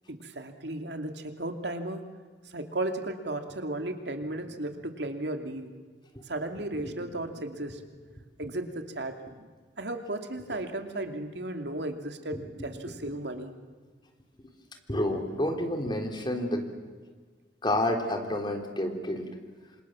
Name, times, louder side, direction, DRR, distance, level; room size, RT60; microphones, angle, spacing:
voice 1, 0.1-2.0 2.5-5.7 6.2-7.8 8.4-9.5 9.8-13.5, right 1 dB, 70° right, 5 dB, 2.7 m, -35 dB
voice 2, 12.3-12.7 14.9-16.6 17.6-19.3, left 1 dB, 25° left, 4 dB, 3.6 m, -29 dB
27.5 x 27.0 x 7.5 m, 1.5 s
head